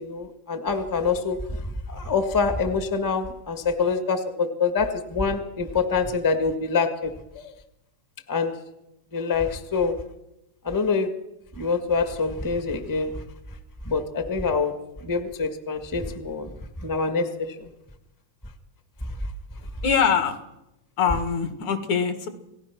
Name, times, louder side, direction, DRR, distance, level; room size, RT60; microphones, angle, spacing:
voice 1, 0.0-7.5 8.3-8.6 9.1-10.0 10.6-11.2 11.5-13.2 13.8-16.5 16.8-17.7, left 4 dB, 15° left, 7 dB, 0.8 m, -26 dB
voice 2, 19.8-20.4 21.0-22.3, left 7 dB, 65° left, 8 dB, 3.1 m, -23 dB
29.0 x 19.0 x 6.1 m, 0.90 s
omnidirectional pair, 3.7 m